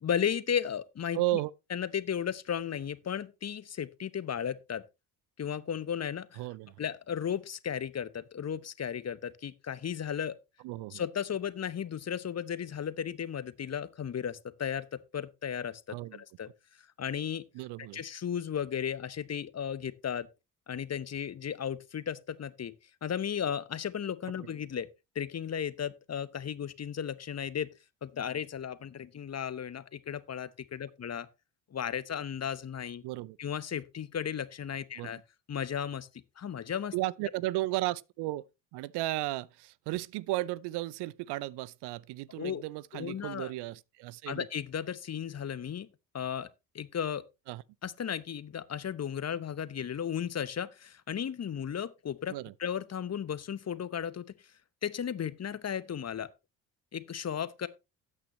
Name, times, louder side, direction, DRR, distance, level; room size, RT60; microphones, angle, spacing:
voice 1, 0.0-1.2 1.7-4.8 5.4-6.4 6.8-10.4 10.9-16.5 17.0-17.4 17.9-20.3 20.7-22.7 23.0-24.9 25.1-27.7 28.0-31.3 31.7-33.0 33.4-35.2 35.5-36.1 36.4-36.9 42.3-42.6 42.9-43.5 44.3-45.9 46.1-46.5 46.7-47.2 47.8-52.3 52.6-54.2 54.8-56.3 56.9-57.7, left 8 dB, 35° left, 1.0 m, -35 dB
voice 2, 1.1-1.5 6.4-6.7 10.6-11.0 15.9-16.2 17.5-18.0 33.0-33.4 35.0-35.1 36.9-38.4 38.7-44.5 47.5-47.6 52.3-52.5, right 17 dB, 60° right, 0.6 m, -34 dB
12.5 x 8.8 x 3.1 m
hypercardioid pair, 45°, 45 cm